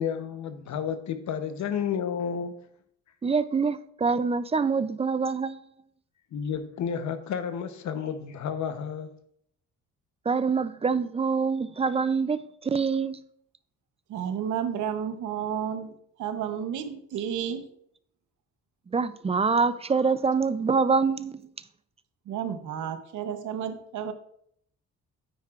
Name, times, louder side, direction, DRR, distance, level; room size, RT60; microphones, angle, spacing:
voice 1, 0.0-2.5 6.3-9.1, left 7 dB, 65° left, 0.9 m, -31 dB
voice 2, 3.2-5.6 10.3-13.2 18.9-21.5, right 5 dB, 20° right, 0.4 m, -25 dB
voice 3, 14.1-15.9 16.2-17.6 22.3-24.1, right 8 dB, 80° right, 0.9 m, -31 dB
9.2 x 9.2 x 2.4 m
cardioid pair, 90°, 30 cm